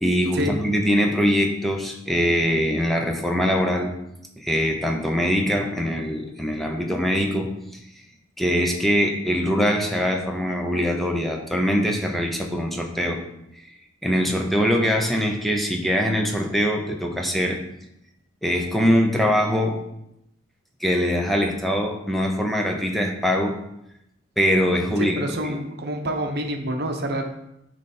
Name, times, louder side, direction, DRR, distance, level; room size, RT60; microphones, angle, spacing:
voice 1, 0.0-3.9 4.4-7.5 8.4-13.2 14.0-17.6 18.4-19.8 20.8-23.6 24.4-25.6, equal, ahead, 1 dB, 0.7 m, -22 dB
voice 2, 25.0-27.2, right 1 dB, 50° right, 3 dB, 0.9 m, -27 dB
9.9 x 3.3 x 4.3 m, 0.83 s
head